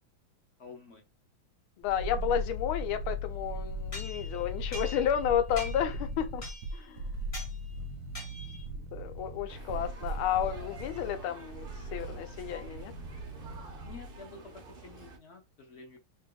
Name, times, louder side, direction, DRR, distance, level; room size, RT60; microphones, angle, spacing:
voice 1, 0.6-1.0 7.1-8.0 13.8-16.0, left 3 dB, 45° left, 0.9 m, -51 dB
voice 2, 1.8-6.4 6.7-7.2 8.7-12.9, left 10 dB, 80° left, 1.5 m, -32 dB
sound 1, 1.8-14.2 14.5-14.6, right 1 dB, 70° right, 1.0 m, -38 dB
sound 2, 3.9-5.2 5.6-6.0 6.4-6.8 7.3-7.6 8.1-8.7, left 1 dB, 30° left, 1.5 m, -43 dB
sound 3, 9.5-15.2, right 3 dB, 90° right, 0.4 m, -50 dB
3.3 x 2.7 x 3.7 m
omnidirectional pair, 2.3 m